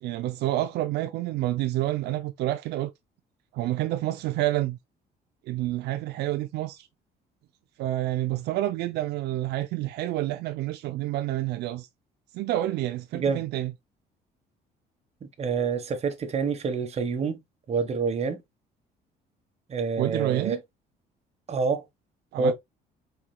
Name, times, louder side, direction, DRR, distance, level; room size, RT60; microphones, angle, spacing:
voice 1, 0.0-2.9 3.5-4.8 5.5-6.9 7.8-11.9 12.3-13.7 20.0-20.6 22.3-22.5, right 15 dB, 80° right, 0.5 m, -28 dB
voice 2, 15.2-17.4 17.7-18.4 19.7-20.6 21.5-21.8 22.4-22.5, right 5 dB, 40° right, 1.2 m, -27 dB
5.0 x 4.5 x 2.3 m
cardioid pair, 110°, 17 cm